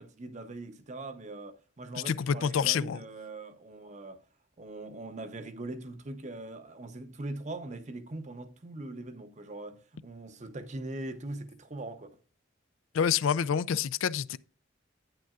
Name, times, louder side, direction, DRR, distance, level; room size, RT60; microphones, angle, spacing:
voice 1, 0.0-4.2 4.6-12.2, right 2 dB, 35° right, 0.7 m, -41 dB
voice 2, 2.1-3.0 12.9-14.4, left 7 dB, 80° left, 0.4 m, -27 dB
9.2 x 8.9 x 2.4 m
head